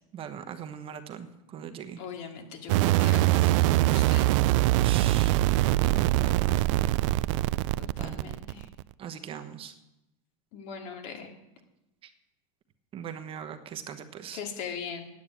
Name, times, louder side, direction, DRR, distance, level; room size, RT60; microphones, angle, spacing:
voice 1, 0.1-1.3 1.5-2.0 4.7-5.4 5.8-6.6 8.0-8.3 9.0-9.7 12.9-14.4, right 8 dB, 30° right, 7 dB, 1.1 m, -40 dB
voice 2, 2.0-4.3 7.8-8.7 10.5-11.3 14.3-15.1, left 6 dB, 60° left, 4 dB, 2.5 m, -40 dB
sound 1, 2.7-8.8, right 16 dB, 65° right, 0.4 m, -23 dB
9.4 x 9.2 x 8.5 m, 0.92 s
supercardioid pair, 130°, 17 cm